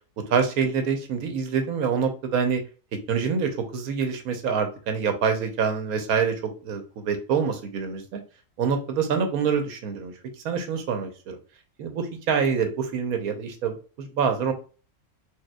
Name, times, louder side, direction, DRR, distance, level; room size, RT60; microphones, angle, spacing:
voice 1, 0.3-2.6 3.1-8.2 8.6-10.1 10.4-11.4 11.8-14.5, right 6 dB, 85° right, 6 dB, 1.2 m, -26 dB
4.4 x 2.6 x 2.2 m, 0.36 s
omnidirectional pair, 1.5 m